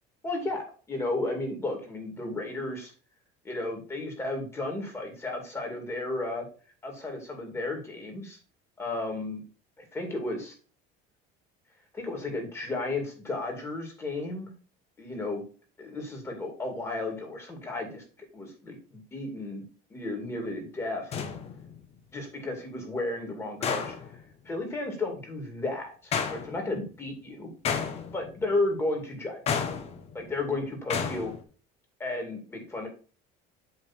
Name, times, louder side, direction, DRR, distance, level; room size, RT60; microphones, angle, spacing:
voice 1, 0.2-2.9 3.4-6.5 6.8-8.4 8.8-9.4 9.9-10.5 11.9-14.5 15.0-15.4 15.8-18.0 18.3-19.6 19.9-21.2 22.1-23.9 24.5-27.5 28.1-29.6 30.1-31.3 32.0-32.9, left 2 dB, 15° left, 2 dB, 2.4 m, -33 dB
sound 1, 20.2-20.4 21.1-21.8 23.6-24.2 26.1-26.8 27.6-28.5 29.5-30.3 30.9-31.4, left 6 dB, 35° left, 1.1 m, -32 dB
8.0 x 3.5 x 6.0 m, 0.37 s
cardioid pair, 160°, 18 cm